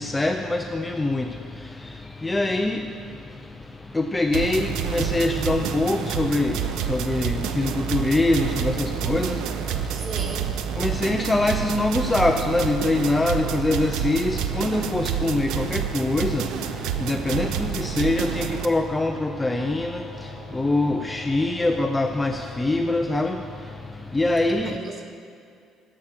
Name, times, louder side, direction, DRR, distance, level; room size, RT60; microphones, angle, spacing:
voice 1, 0.0-10.1 10.8-24.8, left 2 dB, 10° left, 5 dB, 0.4 m, -24 dB
sound 1, 4.3-18.7, right 9 dB, 75° right, 0.6 m, -28 dB
sound 2, 5.2-24.4, right 1 dB, 55° right, 2.8 m, -43 dB
voice 2, 9.9-10.7 24.6-25.0, right 3 dB, 25° right, 3 dB, 1.0 m, -36 dB
11.0 x 7.2 x 7.7 m, 2.4 s
cardioid pair, 175°, 0 cm